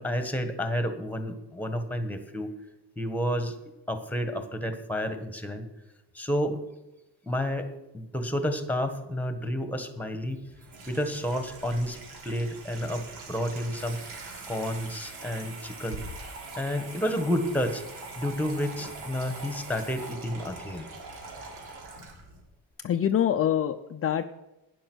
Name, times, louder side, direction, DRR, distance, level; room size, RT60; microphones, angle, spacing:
voice 1, 0.0-2.5 3.0-3.6 3.9-5.7 6.1-6.6 7.2-10.5 10.9-12.0 12.2-14.0 14.5-16.0 16.6-17.8 18.2-20.9, equal, 5° left, 8 dB, 1.5 m, -30 dB
Water tap faucet / Sink (filling or washing), 10.2-22.4, right 3 dB, 75° right, 3.8 m, -43 dB
voice 2, 22.8-24.2, left 9 dB, 35° left, 6 dB, 0.6 m, -25 dB
11.5 x 10.0 x 6.2 m, 0.94 s
cardioid pair, 135°, 39 cm